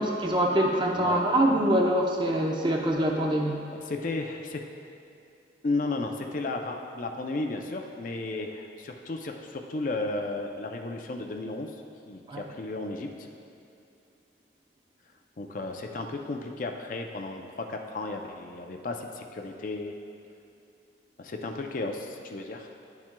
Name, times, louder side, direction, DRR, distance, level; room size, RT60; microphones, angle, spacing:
voice 1, 0.0-3.6 12.3-12.4, right 1 dB, 25° right, 0 dB, 0.6 m, -24 dB
voice 2, 1.0-1.3 3.7-4.6 5.6-13.1 15.4-19.9 21.2-22.7, left 2 dB, 45° left, 3 dB, 0.4 m, -34 dB
10.5 x 7.3 x 2.2 m, 2.7 s
head